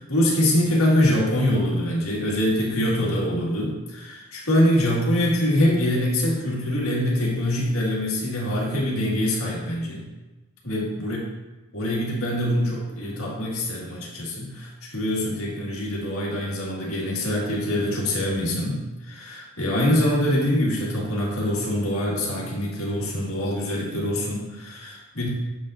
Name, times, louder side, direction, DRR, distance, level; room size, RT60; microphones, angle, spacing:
voice 1, 0.0-10.1 10.6-11.2 11.7-25.3, left 1 dB, 70° left, -3 dB, 1.8 m, -24 dB
7.5 x 7.5 x 2.5 m, 1.1 s
head